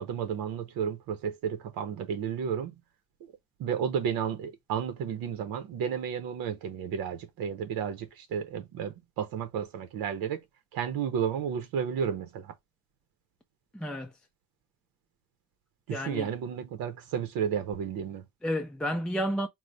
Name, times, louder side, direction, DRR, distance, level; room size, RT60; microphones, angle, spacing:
voice 1, 0.0-2.7 3.6-10.4 10.7-12.5 15.9-18.2, right 8 dB, 80° right, 0.7 m, -32 dB
voice 2, 13.7-14.2 15.9-16.3 18.4-19.5, equal, 5° left, 0.4 m, -31 dB
4.6 x 2.1 x 3.8 m
cardioid pair, 125°, 35 cm